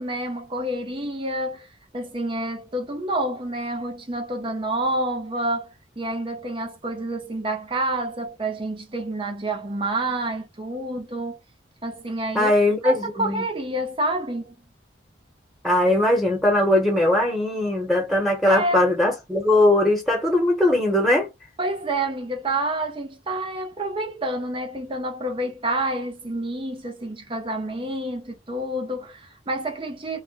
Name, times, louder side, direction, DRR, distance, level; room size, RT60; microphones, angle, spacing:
voice 1, 0.0-11.4 11.8-12.5 12.8-14.6 18.5-18.9 21.6-30.2, right 1 dB, 25° right, 0.6 m, -28 dB
voice 2, 12.3-13.4 15.6-21.3, left 1 dB, ahead, 1.1 m, -20 dB
2.4 x 2.2 x 3.8 m
head